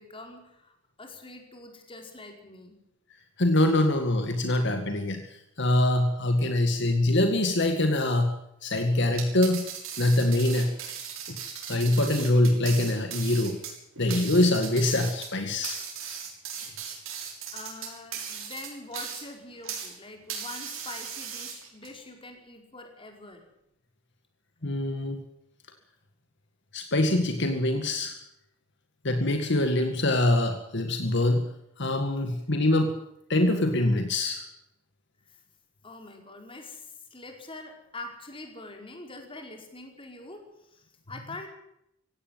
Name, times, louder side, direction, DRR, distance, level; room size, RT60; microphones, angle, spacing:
voice 1, 0.0-2.7 16.8-17.0 17.5-23.4 35.2-35.4 35.8-41.5, left 2 dB, 25° left, 3 dB, 4.9 m, -44 dB
voice 2, 3.4-8.4 8.6-9.7 10.0-10.7 11.3-11.4 11.7-13.6 14.0-15.8 24.6-25.2 26.7-28.2 29.0-31.5 31.8-32.9 33.3-34.5, left 1 dB, 60° left, 6 dB, 2.1 m, -24 dB
sound 1, 9.1-20.0 20.3-21.9, right 7 dB, 90° right, 6.7 m, -38 dB
17.0 x 17.0 x 9.3 m, 0.78 s
head